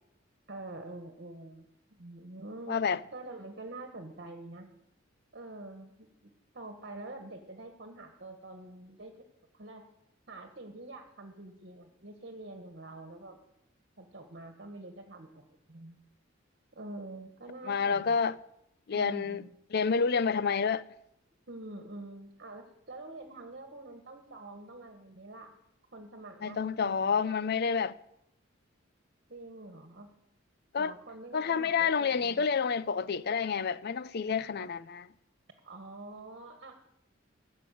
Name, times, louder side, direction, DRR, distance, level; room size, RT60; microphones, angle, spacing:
voice 1, 0.5-2.8 3.1-4.7 5.3-9.2 9.5-9.8 10.3-13.4 14.0-16.0 16.7-18.2 18.9-19.5 21.5-25.5 25.9-27.3 29.3-30.1 30.8-32.5 35.6-36.7, right 2 dB, 55° right, 1.6 m, -46 dB
voice 2, 2.7-3.0 17.7-18.3 18.9-20.8 26.4-27.9 30.7-30.9 31.3-35.1, left 6 dB, 55° left, 0.5 m, -29 dB
13.5 x 7.5 x 9.3 m
head